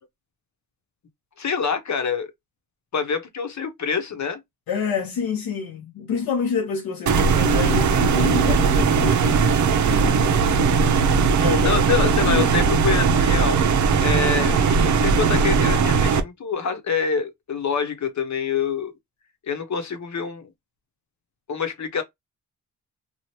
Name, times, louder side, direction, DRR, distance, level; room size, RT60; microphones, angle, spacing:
voice 1, 1.4-2.3 2.9-4.4 11.6-13.6 14.0-18.9 19.5-20.5 21.5-22.0, left 6 dB, 50° left, 1.0 m, -26 dB
voice 2, 4.7-10.5 11.4-11.8 12.2-12.5, left 6 dB, 85° left, 0.8 m, -28 dB
sound 1, 7.1-16.2, right 5 dB, 55° right, 0.7 m, -19 dB
3.1 x 2.3 x 2.8 m
cardioid pair, 70°, 35 cm